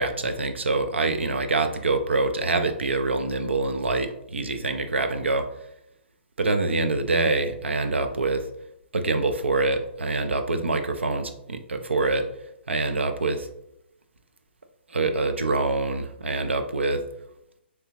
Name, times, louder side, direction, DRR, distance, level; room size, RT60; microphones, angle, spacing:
voice 1, 0.0-5.5 6.4-8.5 8.9-12.3 12.7-13.5 14.9-17.0, right 3 dB, 80° right, 7 dB, 0.5 m, -25 dB
3.3 x 2.9 x 2.8 m, 0.78 s
figure-of-eight pair, 125°, 6 cm